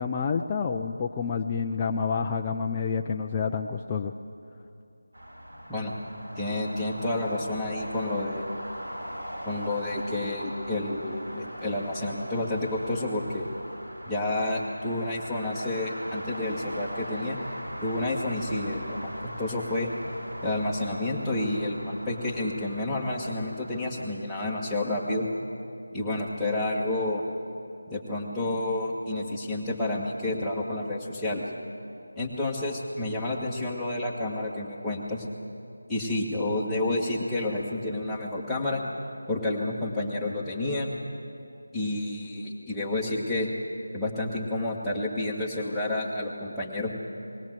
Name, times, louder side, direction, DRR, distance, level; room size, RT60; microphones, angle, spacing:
voice 1, 0.0-4.1, left 6 dB, 20° left, 2 dB, 0.5 m, -28 dB
sound 1, 5.1-24.0, equal, 75° right, 7.3 m, -40 dB
voice 2, 6.4-8.4 9.5-13.5 14.1-17.4 17.8-19.9 20.4-25.3 25.9-27.3 27.9-31.4 32.2-35.3 35.9-38.8 39.3-40.9 41.7-43.5 43.9-46.9, left 2 dB, 5° left, -8 dB, 1.7 m, -30 dB
20.0 x 17.0 x 7.7 m, 2.5 s
figure-of-eight pair, 165°, 0 cm